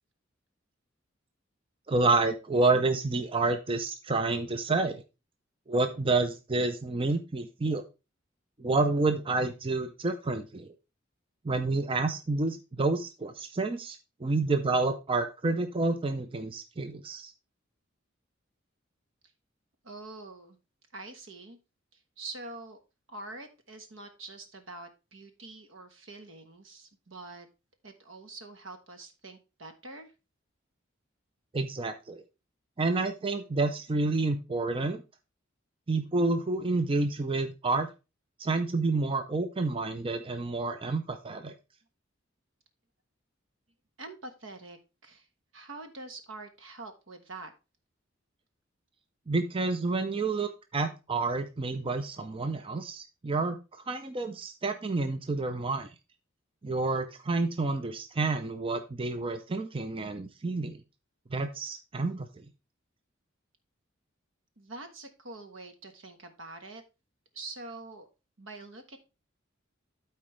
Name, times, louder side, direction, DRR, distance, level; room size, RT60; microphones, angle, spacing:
voice 1, 1.9-5.0 5.7-7.8 8.6-10.7 11.4-17.3 31.5-32.2 32.8-35.0 35.9-37.9 38.4-41.5 49.3-53.6 53.9-55.9 56.6-60.8 61.3-62.3, right 3 dB, 25° right, 7 dB, 0.5 m, -29 dB
voice 2, 19.8-20.6 20.9-21.6 21.9-22.8 23.1-27.5 27.8-30.1 44.0-45.3 45.5-47.5 64.6-66.8 67.3-68.1 68.4-69.0, right 2 dB, 75° right, 7 dB, 1.3 m, -45 dB
12.5 x 4.3 x 3.2 m, 0.28 s
head